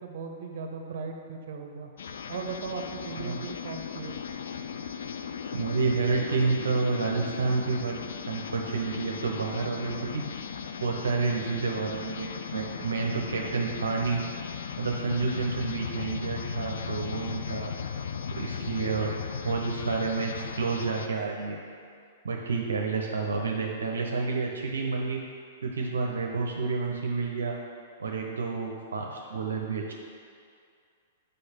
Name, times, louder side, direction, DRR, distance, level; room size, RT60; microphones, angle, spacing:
voice 1, 0.0-1.9 2.3-4.2, right 5 dB, 60° right, 3 dB, 0.9 m, -38 dB
sound 1, 2.0-21.1, left 6 dB, 70° left, 0.4 m, -37 dB
voice 2, 5.5-8.0 8.3-10.2 10.8-14.2 14.8-17.7 18.3-19.1 19.4-21.6 22.2-25.2 25.6-27.6 28.0-29.9, right 4 dB, 80° right, 0 dB, 0.7 m, -29 dB
6.6 x 5.3 x 4.3 m, 2.3 s
hypercardioid pair, 115°, 0 cm